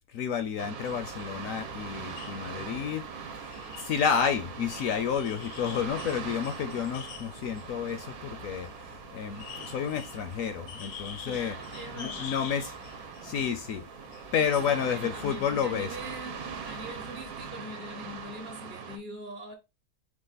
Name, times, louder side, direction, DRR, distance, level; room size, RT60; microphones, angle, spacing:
voice 1, 0.0-3.1 3.3-11.6 12.0-12.8 13.2-13.8 14.3-15.9, left 7 dB, 70° left, 0.9 m, -30 dB
sound 1, 0.6-19.0, right 6 dB, 75° right, 1.3 m, -42 dB
sound 2, 0.8-17.5, left 9 dB, 90° left, 1.2 m, -48 dB
voice 2, 11.2-12.3 13.0-13.5 14.3-19.5, equal, 40° right, 0.9 m, -43 dB
4.9 x 2.5 x 3.9 m
omnidirectional pair, 1.7 m